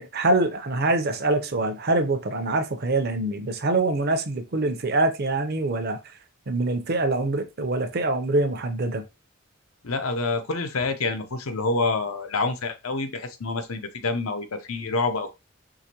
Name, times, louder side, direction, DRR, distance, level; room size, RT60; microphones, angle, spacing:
voice 1, 0.0-6.0 6.5-9.0, right 2 dB, 50° right, 0.7 m, -24 dB
voice 2, 9.8-15.3, left 3 dB, 90° left, 0.8 m, -27 dB
4.9 x 3.0 x 2.8 m
head